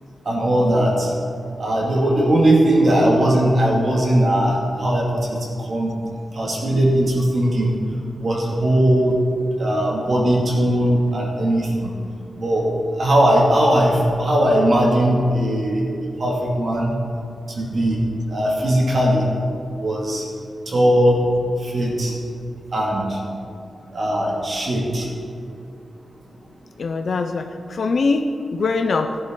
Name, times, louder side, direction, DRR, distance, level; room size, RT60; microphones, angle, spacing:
voice 1, 0.3-1.1 1.6-5.1 5.7-5.9 6.4-7.8 8.2-9.2 9.6-11.9 12.4-12.7 13.0-15.8 16.2-16.9 17.6-18.0 18.3-19.3 19.8-20.2 20.7-21.2 21.6-22.1 22.7-23.2 23.9-25.0, right 1 dB, 45° right, -3 dB, 2.5 m, -19 dB
voice 2, 26.8-29.2, left 4 dB, 55° left, 5 dB, 0.6 m, -22 dB
15.5 x 11.0 x 4.0 m, 2.4 s
wide cardioid pair, 170°, 0 cm